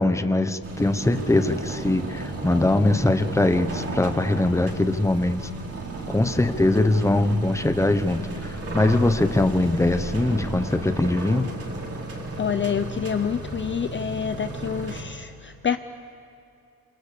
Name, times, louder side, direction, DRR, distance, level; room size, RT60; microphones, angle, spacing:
voice 1, 0.0-5.5 6.1-11.5, left 2 dB, 10° left, 9 dB, 1.1 m, -22 dB
sound 1, 0.6-15.0, right 2 dB, 40° right, 4.2 m, -34 dB
voice 2, 12.4-15.8, left 7 dB, 30° left, 9 dB, 0.7 m, -27 dB
27.5 x 26.5 x 6.9 m, 2.7 s
wide cardioid pair, 140°, 36 cm